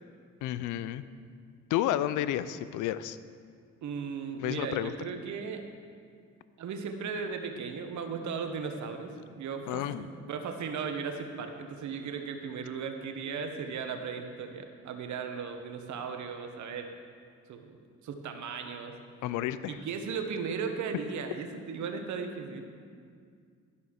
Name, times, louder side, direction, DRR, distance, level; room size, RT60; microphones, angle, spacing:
voice 1, 0.4-1.0 1.7-3.2 4.4-4.9 9.7-10.1 19.2-19.8, left 12 dB, 85° left, 15 dB, 0.5 m, -31 dB
voice 2, 3.8-5.7 6.6-16.9 17.5-17.8 18.0-18.9 19.7-22.7, right 5 dB, 70° right, 6 dB, 1.1 m, -36 dB
11.5 x 5.4 x 6.4 m, 2.1 s
cardioid pair, 90°, 30 cm